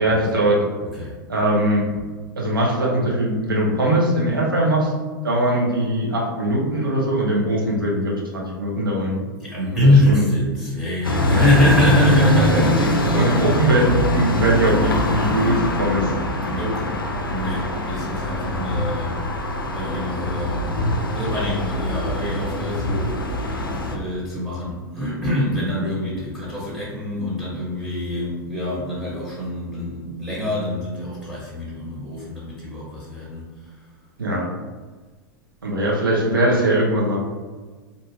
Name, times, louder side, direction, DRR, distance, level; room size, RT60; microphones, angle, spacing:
voice 1, 0.0-0.6 1.3-1.9 2.4-4.9 5.2-9.1 9.8-10.2 11.3-11.4 12.5-12.6 13.1-16.1 18.0-18.1 25.8-26.0 26.4-26.5 34.2-34.5 35.6-37.2, right 1 dB, 85° right, -4 dB, 0.8 m, -21 dB
voice 2, 0.8-1.2 9.4-13.4 16.0-16.9 17.3-19.2 19.7-20.7 21.1-23.4 23.9-33.4, left 1 dB, 10° right, -7 dB, 0.9 m, -24 dB
sound 1, 11.0-24.0, left 1 dB, 90° left, 0.4 m, -23 dB
2.6 x 2.3 x 2.8 m, 1.4 s
figure-of-eight pair, 95°, 11 cm